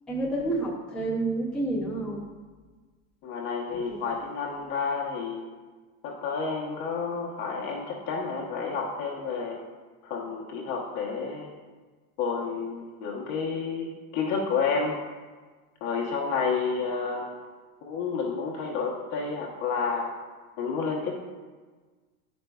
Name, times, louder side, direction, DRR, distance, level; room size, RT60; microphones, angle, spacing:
voice 1, 0.1-2.2 3.7-4.2, right 2 dB, ahead, -6 dB, 0.4 m, -30 dB
voice 2, 3.2-5.5 6.0-9.6 10.0-11.5 12.2-15.0 15.8-17.3 17.8-20.1 20.6-21.2, left 5 dB, 50° left, -1 dB, 1.0 m, -30 dB
10.0 x 5.2 x 2.3 m, 1.4 s
supercardioid pair, 165°, 46 cm